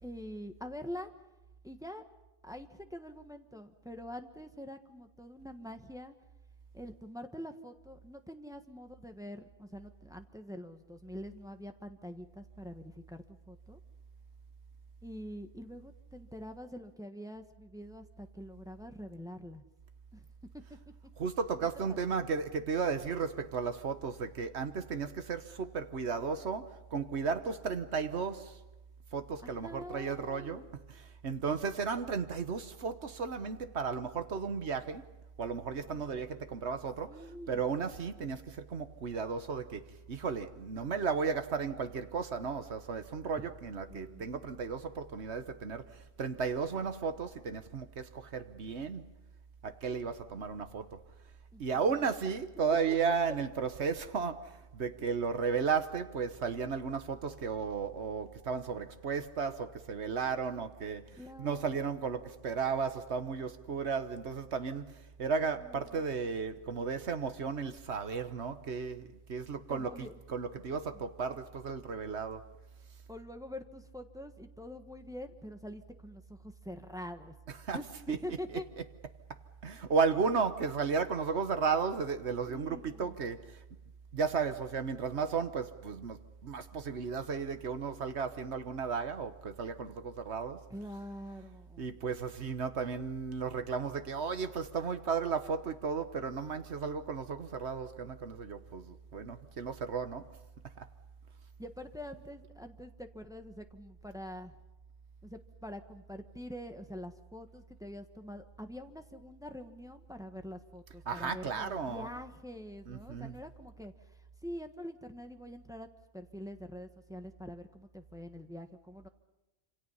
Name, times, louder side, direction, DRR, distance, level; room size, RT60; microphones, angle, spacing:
voice 1, 0.0-1.1 1.6-2.0 2.4-6.1 6.7-13.8 15.0-19.6 20.1-20.2 21.9-22.2 23.2-23.3 29.4-30.7 35.7-36.2 37.1-37.6 43.9-44.3 51.5-52.1 52.9-53.0 55.0-55.1 61.2-61.6 65.6-66.0 69.7-70.1 70.7-71.0 73.1-77.3 77.7-78.6 82.5-83.1 90.7-92.0 101.6-104.6 105.2-115.9 116.1-119.1, equal, 5° right, 1.3 m, -45 dB
voice 2, 21.2-28.6 29.1-35.1 35.4-49.1 49.6-51.0 51.6-72.4 77.6-77.8 78.1-78.2 79.6-83.6 84.1-90.7 91.8-100.3 100.8-100.9 111.1-112.1 112.9-113.3, right 5 dB, 60° right, 1.5 m, -34 dB
27.0 x 26.5 x 5.6 m
omnidirectional pair, 1.3 m